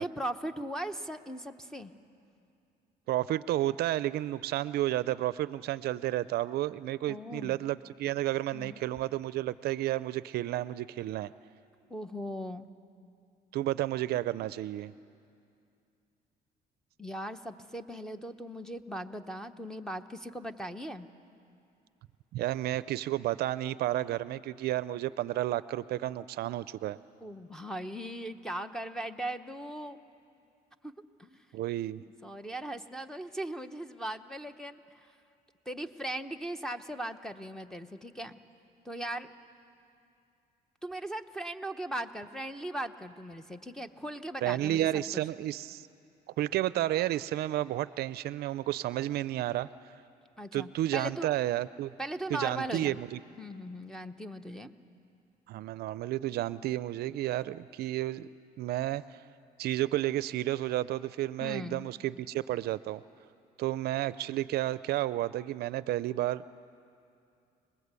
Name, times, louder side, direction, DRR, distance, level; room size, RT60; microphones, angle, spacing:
voice 1, 0.0-1.9 7.1-7.6 8.5-8.8 11.9-12.7 17.0-21.1 27.2-30.0 30.8-30.9 31.2-31.4 32.2-35.1 35.7-38.4 38.8-39.3 40.8-45.2 50.4-51.3 52.0-53.0 53.4-54.7 61.4-61.9, right 1 dB, 5° left, 9 dB, 1.0 m, -38 dB
voice 2, 3.1-11.3 13.5-14.9 22.3-27.0 31.5-32.0 44.4-45.9 46.4-49.7 50.5-51.9 52.3-53.2 55.5-58.3 58.6-59.2 59.6-63.0 63.6-66.5, right 14 dB, 70° right, 16 dB, 0.5 m, -31 dB
27.5 x 20.0 x 8.3 m, 2.5 s
cardioid pair, 110°, 17 cm